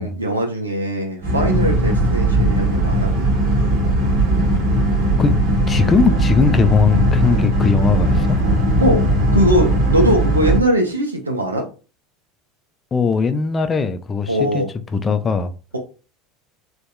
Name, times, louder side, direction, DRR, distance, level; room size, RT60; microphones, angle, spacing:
voice 1, 0.0-3.1 8.8-11.7 14.3-14.7, equal, 85° right, 0.4 m, -20 dB
Boat Water vehicle, 1.2-10.6, right 1 dB, 60° right, 0.8 m, -18 dB
voice 2, 5.7-8.4 12.9-14.6 14.9-15.5, left 5 dB, 25° left, 0.3 m, -19 dB
2.7 x 2.1 x 2.2 m
figure-of-eight pair, 75°, 0 cm